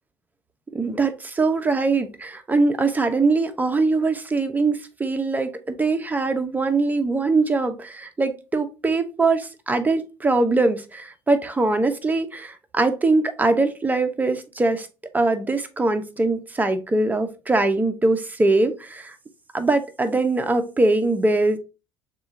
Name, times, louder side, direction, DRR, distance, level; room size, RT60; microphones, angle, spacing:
voice 1, 0.7-14.9 15.1-19.2 19.5-21.6, right 3 dB, 15° right, 0.8 m, -22 dB
6.6 x 2.5 x 2.7 m
supercardioid pair, 80°, 10 cm